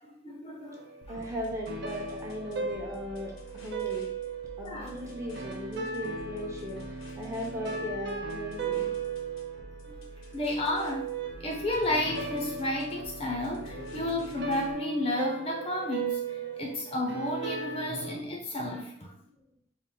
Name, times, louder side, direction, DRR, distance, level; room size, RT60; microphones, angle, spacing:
voice 1, 0.0-0.9 1.1-1.2 4.6-4.9 9.9-10.0 10.3-11.0 11.4-19.1, left 1 dB, 30° left, 0 dB, 0.5 m, -32 dB
sound 1, 0.7-18.2, right 4 dB, 55° right, 0.5 m, -37 dB
sound 2, 1.0-14.7, equal, 85° left, 0.7 m, -50 dB
voice 2, 1.1-4.1 4.6-8.9 19.2-19.4, equal, 15° right, -2 dB, 0.7 m, -38 dB
4.3 x 2.0 x 3.8 m, 0.66 s
head